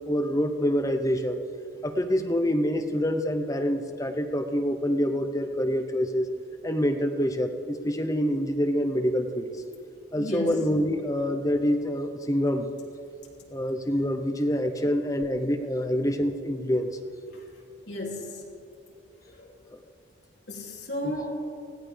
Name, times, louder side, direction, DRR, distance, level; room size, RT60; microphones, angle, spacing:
voice 1, 0.1-1.4 1.8-6.3 6.6-9.5 10.1-12.7 13.5-16.9 21.0-21.1, equal, 20° left, 5 dB, 0.8 m, -26 dB
voice 2, 10.2-10.7 17.3-17.4 17.9-18.4 19.3-19.7 20.5-21.5, equal, 70° left, -2 dB, 2.9 m, -34 dB
20.0 x 15.5 x 3.4 m, 2.4 s
head